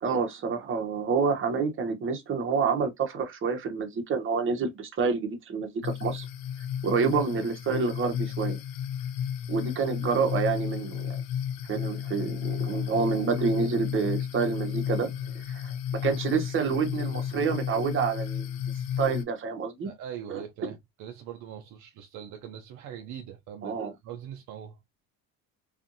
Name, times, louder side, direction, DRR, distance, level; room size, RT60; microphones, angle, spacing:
voice 1, 0.0-6.3 6.8-8.6 9.5-11.2 11.7-19.9 20.3-20.4 23.6-23.9, right 5 dB, 35° right, 1.0 m, -28 dB
sound 1, 5.8-19.2, left 9 dB, 70° left, 0.6 m, -33 dB
voice 2, 19.8-24.8, right 9 dB, 60° right, 0.6 m, -42 dB
2.6 x 2.5 x 2.6 m
cardioid pair, 110°, 34 cm